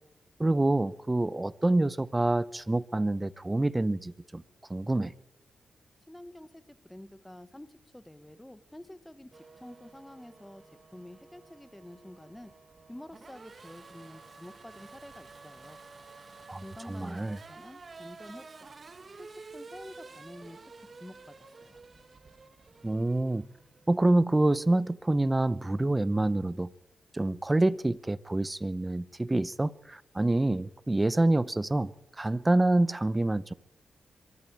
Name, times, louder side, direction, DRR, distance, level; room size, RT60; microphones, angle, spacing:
voice 1, 0.4-4.4 4.7-5.1 16.5-16.6 16.9-17.4 22.8-23.5 23.9-26.7 27.1-31.9 32.2-33.5, right 2 dB, 15° right, 0.7 m, -27 dB
voice 2, 6.1-12.5 12.9-15.8 16.6-18.8 19.2-20.6 20.9-21.8, left 1 dB, 10° left, 1.1 m, -49 dB
Race car auto racing / Accelerating revving vroom, 9.3-24.1, right 4 dB, 40° right, 1.5 m, -51 dB
23.0 x 14.0 x 8.8 m
cardioid pair, 90°, 0 cm